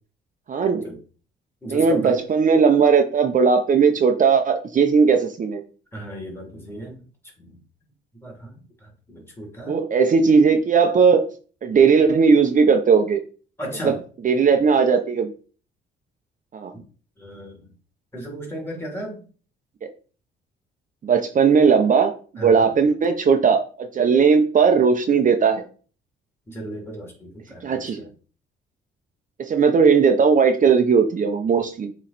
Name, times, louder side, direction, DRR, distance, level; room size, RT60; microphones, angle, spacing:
voice 1, 0.5-0.8 1.7-5.6 9.7-11.3 11.6-13.2 13.8-13.9 14.2-15.3 16.5-16.7 21.0-25.6 27.6-28.1 29.4-31.9, right 5 dB, 40° right, 5 dB, 0.7 m, -18 dB
voice 2, 1.6-2.2 5.9-7.0 7.4-7.6 8.2-9.8 13.6-14.0 17.2-17.7 18.1-19.2 22.4-22.7 26.5-28.1, right 1 dB, 10° left, -1 dB, 3.0 m, -35 dB
7.4 x 3.2 x 4.1 m, 0.40 s
cardioid pair, 90°, 20 cm